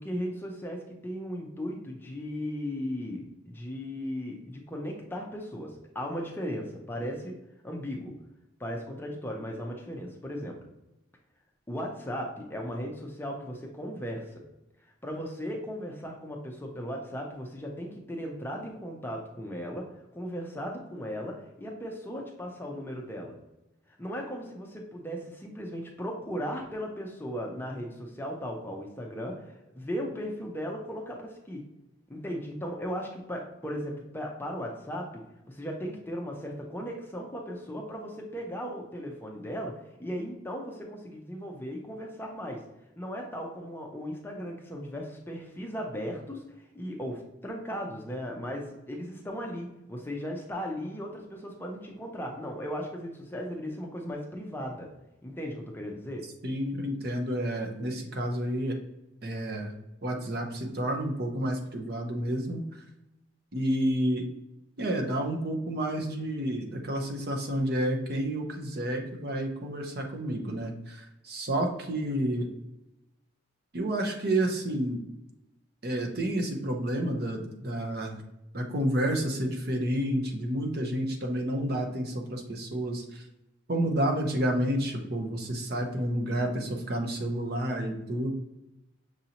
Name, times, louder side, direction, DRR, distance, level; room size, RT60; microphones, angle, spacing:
voice 1, 0.0-7.4 7.6-8.1 8.6-10.7 11.7-14.4 15.0-19.9 20.1-23.3 24.0-31.6 32.1-35.1 35.5-39.7 40.0-42.6 43.0-54.9 55.2-56.3, equal, 10° left, 0 dB, 0.5 m, -37 dB
voice 2, 56.4-58.7 59.2-59.7 60.0-62.8 63.5-64.3 64.8-72.5 73.7-75.0 75.8-78.2 78.5-83.2 83.7-88.3, right 1 dB, 50° right, 2 dB, 0.7 m, -30 dB
6.2 x 2.7 x 2.8 m, 0.91 s
head